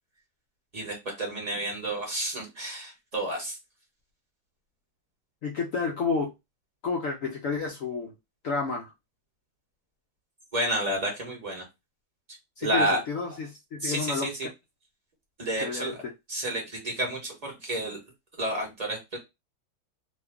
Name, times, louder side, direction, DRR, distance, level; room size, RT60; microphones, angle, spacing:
voice 1, 0.7-3.6 10.5-11.6 12.6-13.0 13.8-14.5 15.4-16.0 16.3-18.0 18.4-19.2, right 1 dB, 25° right, 1.0 m, -30 dB
voice 2, 5.4-6.3 6.8-8.1 8.4-8.9 12.6-14.3 15.6-16.0, left 4 dB, 70° left, 0.8 m, -30 dB
3.0 x 2.3 x 3.4 m
omnidirectional pair, 1.9 m